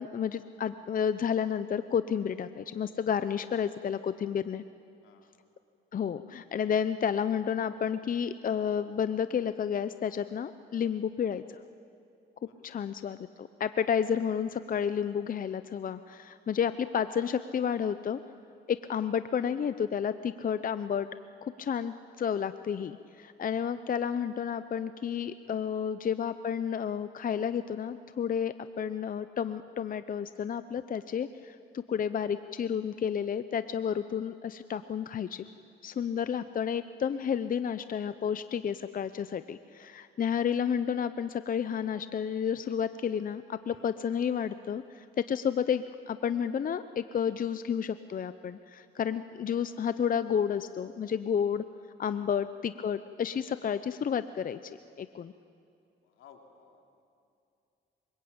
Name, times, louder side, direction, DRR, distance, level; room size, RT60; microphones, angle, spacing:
voice 1, 0.0-4.6 5.9-11.6 12.6-18.2 18.7-21.1 21.4-35.4 35.8-51.6 52.0-55.3, left 7 dB, 45° left, 12 dB, 0.8 m, -31 dB
voice 2, 12.4-12.7 18.8-19.1 25.4-25.8 43.6-43.9 52.1-52.4 56.0-56.8, left 7 dB, 85° left, 3 dB, 3.5 m, -58 dB
26.5 x 24.5 x 8.8 m, 2.5 s
cardioid pair, 90°, 20 cm